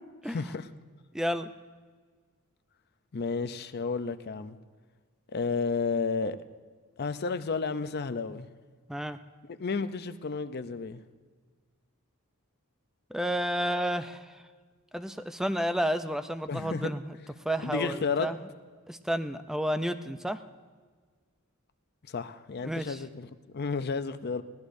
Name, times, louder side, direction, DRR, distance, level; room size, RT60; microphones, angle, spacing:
voice 1, 0.3-0.7 3.1-4.6 5.3-6.4 7.0-8.5 9.6-11.0 16.5-16.9 17.6-18.3 22.1-24.4, left 4 dB, 50° left, 11 dB, 0.6 m, -32 dB
voice 2, 1.1-1.5 8.9-9.2 13.1-14.4 14.9-17.2 17.4-18.4 18.9-20.4 22.6-23.0, equal, ahead, 9 dB, 0.4 m, -31 dB
20.0 x 16.5 x 2.6 m, 1.5 s
head